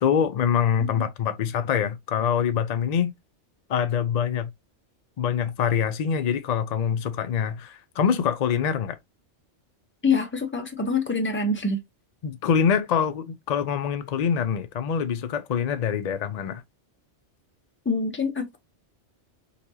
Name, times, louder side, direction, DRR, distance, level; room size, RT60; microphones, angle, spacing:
voice 1, 0.0-3.1 3.7-4.5 5.2-9.0 12.2-16.6, left 7 dB, 60° left, 0.4 m, -25 dB
voice 2, 10.0-11.8 17.8-18.6, left 3 dB, 10° left, 0.7 m, -25 dB
4.1 x 2.9 x 2.7 m
omnidirectional pair, 1.2 m